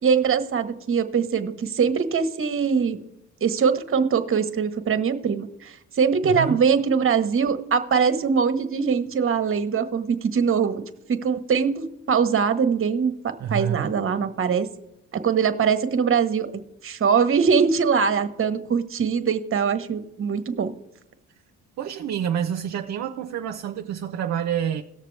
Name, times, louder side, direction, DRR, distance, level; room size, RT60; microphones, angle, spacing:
voice 1, 0.0-3.0 3.4-10.8 11.1-14.7 15.1-20.7, right 6 dB, 45° right, 1.1 m, -22 dB
voice 2, 6.2-6.6 13.4-13.9 21.8-24.8, right 9 dB, 60° right, 0.7 m, -28 dB
18.0 x 6.7 x 3.2 m
cardioid pair, 90°, 30 cm